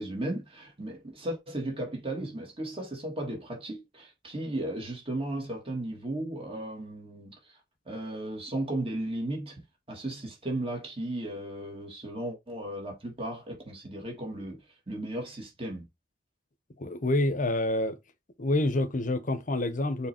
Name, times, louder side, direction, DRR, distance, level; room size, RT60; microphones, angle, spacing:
voice 1, 0.0-7.6 7.9-15.9, right 1 dB, 30° right, 2.2 m, -35 dB
voice 2, 16.8-18.0 18.4-20.1, left 1 dB, 45° left, 0.9 m, -27 dB
6.7 x 3.4 x 4.4 m
head